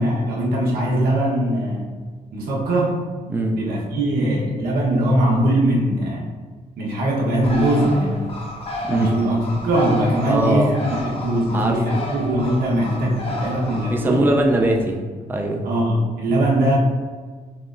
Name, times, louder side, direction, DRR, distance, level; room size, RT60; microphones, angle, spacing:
voice 1, 0.0-1.9 2.3-3.0 3.5-6.2 6.8-8.3 8.9-14.2 15.6-16.8, right 1 dB, 90° right, -3 dB, 1.2 m, -21 dB
voice 2, 3.3-3.6 8.8-9.2 10.3-10.7 11.3-12.0 13.7-15.0 15.3-15.7, right 1 dB, 15° right, 1 dB, 0.5 m, -21 dB
Bird, 7.4-14.8, equal, 40° left, 0.9 m, -32 dB
6.7 x 3.1 x 2.6 m, 1.5 s
cardioid pair, 130°, 15 cm